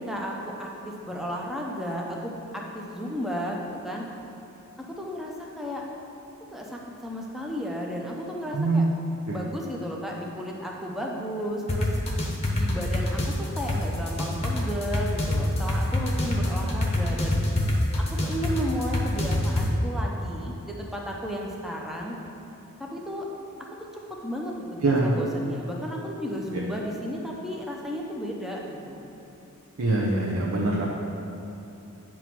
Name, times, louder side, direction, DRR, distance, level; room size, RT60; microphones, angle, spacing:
voice 1, 0.1-0.7 1.1-4.0 4.8-5.8 6.5-8.9 9.3-11.9 12.5-17.4 18.2-22.2 22.8-23.2 24.2-29.0, equal, ahead, -2 dB, 0.7 m, -33 dB
voice 2, 8.5-8.9 9.3-9.4 24.8-25.2 26.5-26.6 29.8-30.9, right 2 dB, 70° right, -3 dB, 0.7 m, -24 dB
sound 1, 11.7-19.7, left 1 dB, 30° left, 0.9 m, -25 dB
8.5 x 3.1 x 6.0 m, 3.0 s
head